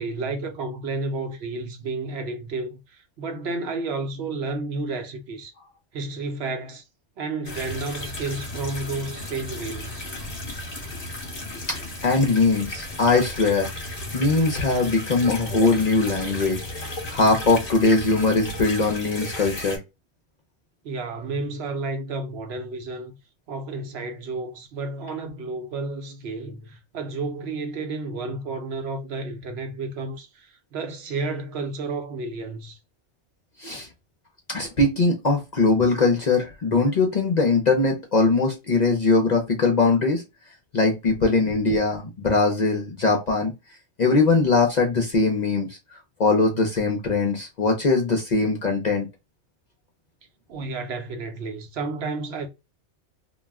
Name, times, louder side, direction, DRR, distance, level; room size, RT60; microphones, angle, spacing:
voice 1, 0.0-5.5 5.9-6.8 7.2-10.0 20.8-23.2 23.5-32.8 50.5-52.5, right 3 dB, 65° right, 0.8 m, -31 dB
sound 1, 7.4-19.8, left 1 dB, 35° left, 0.8 m, -34 dB
voice 2, 11.7-16.6 17.1-19.8 33.6-33.9 34.5-40.2 40.7-43.5 44.0-49.1, left 3 dB, 55° left, 0.5 m, -21 dB
2.3 x 2.1 x 3.3 m
omnidirectional pair, 1.2 m